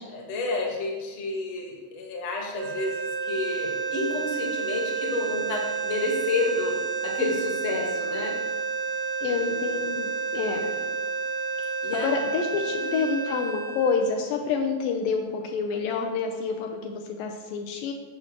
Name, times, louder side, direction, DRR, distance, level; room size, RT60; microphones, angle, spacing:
voice 1, 0.1-6.7 7.0-8.3 9.3-9.9 10.6-10.8 11.8-12.1 12.7-12.9, left 3 dB, 60° left, 0 dB, 2.1 m, -30 dB
sound 1, 2.5-14.8, right 5 dB, 80° right, 1.5 m, -30 dB
voice 2, 9.2-10.7 11.6-11.7 12.0-17.9, left 5 dB, 85° left, 3 dB, 2.2 m, -28 dB
10.5 x 6.4 x 2.9 m, 1.4 s
omnidirectional pair, 4.0 m